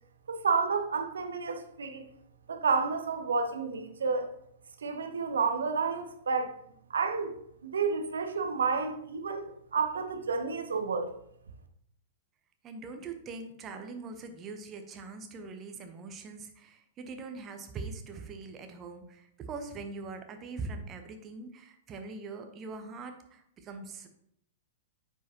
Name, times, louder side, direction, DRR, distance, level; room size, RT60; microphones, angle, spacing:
voice 1, 0.3-2.1 2.5-4.3 4.8-6.6 6.9-7.4 7.6-11.1, right 5 dB, 65° right, 6 dB, 0.8 m, -30 dB
voice 2, 12.6-24.1, right 4 dB, 25° right, 6 dB, 0.9 m, -42 dB
9.3 x 4.8 x 2.9 m, 0.73 s
figure-of-eight pair, 105°, 0 cm